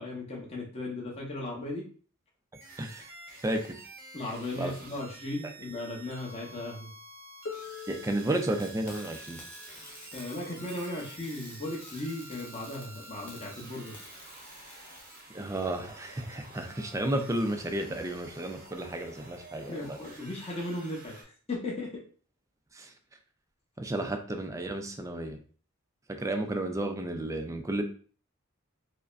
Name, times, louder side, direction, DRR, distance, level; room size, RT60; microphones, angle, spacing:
voice 1, 0.0-1.8 4.1-6.9 10.1-13.9 19.7-22.0, left 2 dB, 30° left, -3 dB, 0.9 m, -37 dB
sound 1, 2.5-21.2, right 2 dB, 45° right, 0.8 m, -50 dB
voice 2, 2.8-3.1 3.4-3.8 4.6-4.7 7.9-9.4 15.3-20.0 22.7-22.9 23.8-25.4 26.1-27.8, right 1 dB, 15° right, 6 dB, 0.4 m, -32 dB
Harp, 7.5-13.2 14.3-14.4, left 6 dB, 55° left, 0.5 m, -48 dB
sound 2, 8.6-15.2, left 1 dB, 5° left, 0.9 m, -50 dB
4.8 x 2.1 x 2.5 m, 0.42 s
head